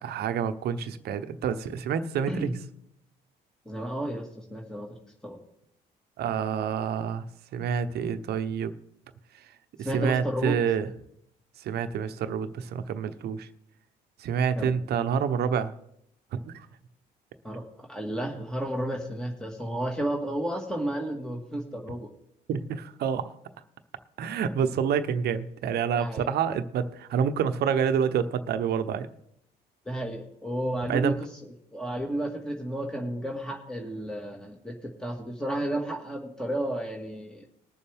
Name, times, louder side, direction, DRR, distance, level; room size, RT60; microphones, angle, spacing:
voice 1, 0.0-2.5 6.2-7.2 7.5-8.7 9.8-10.9 11.6-13.5 14.2-15.7 16.3-16.7 22.5-23.3 24.2-29.1 30.9-31.1, right 7 dB, 70° right, 0.9 m, -28 dB
voice 2, 3.7-5.0 5.2-5.4 9.8-10.6 14.6-14.8 17.4-17.6 17.9-22.1 25.9-26.3 29.9-31.3 31.7-37.5, right 1 dB, 5° left, 1.8 m, -32 dB
20.5 x 7.1 x 3.5 m
cardioid pair, 85°, 17 cm